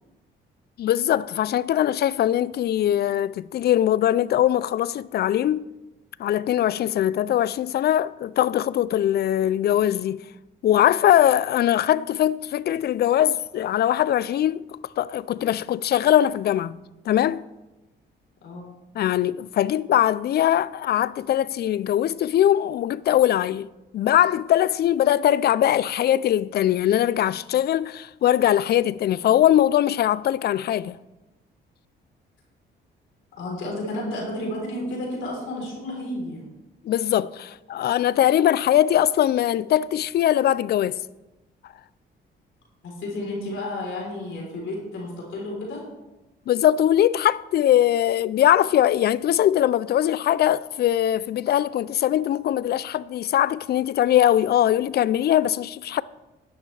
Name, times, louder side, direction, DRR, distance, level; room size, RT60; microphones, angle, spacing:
voice 1, 0.8-5.7 6.2-10.2 10.6-14.6 15.0-16.8 17.1-17.5 18.9-23.7 23.9-31.0 36.8-41.0 46.5-56.0, left 11 dB, 55° left, 0.4 m, -21 dB
voice 2, 33.4-36.4 42.8-45.8, left 1 dB, 75° left, 3.6 m, -31 dB
11.0 x 11.0 x 3.3 m
cardioid pair, 90°, 20 cm